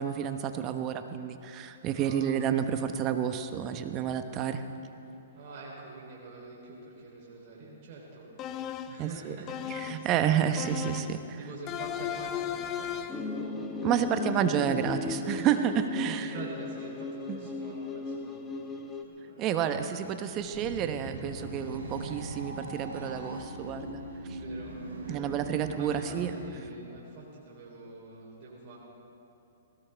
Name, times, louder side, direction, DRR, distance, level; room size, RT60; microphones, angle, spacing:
voice 1, 0.0-4.6 9.0-9.3 9.7-11.4 13.8-16.3 17.3-17.5 19.4-24.0 24.3-24.4 25.1-26.3, right 9 dB, 30° right, 8 dB, 0.9 m, -30 dB
voice 2, 1.9-2.4 5.3-8.6 8.9-14.3 16.0-19.5 24.3-25.4 25.8-28.8, right 3 dB, 45° right, -4 dB, 3.5 m, -46 dB
sound 1, 8.4-9.0 9.5-10.1 10.6-11.2 11.7-13.3, left 10 dB, 30° left, 0.6 m, -36 dB
sound 2, 13.1-19.0, left 3 dB, 15° left, 1.3 m, -36 dB
sound 3, 20.3-26.5, right 1 dB, 85° right, 4.1 m, -41 dB
20.0 x 18.0 x 3.4 m, 2.8 s
hypercardioid pair, 130°, 0 cm